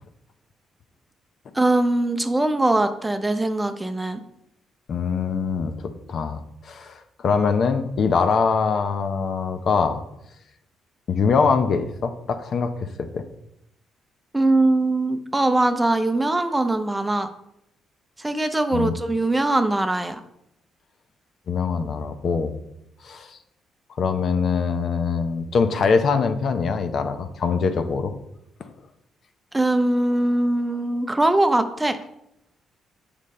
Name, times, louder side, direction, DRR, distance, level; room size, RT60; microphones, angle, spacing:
voice 1, 1.5-4.2 14.3-17.3 18.2-20.2 29.5-32.0, right 2 dB, 15° right, 8 dB, 0.6 m, -21 dB
voice 2, 4.9-10.0 11.1-13.2 18.7-18.9 21.5-22.5 23.0-23.4 24.0-28.1, left 5 dB, 55° left, 8 dB, 0.7 m, -23 dB
7.4 x 5.2 x 4.2 m, 0.79 s
cardioid pair, 90°, 0 cm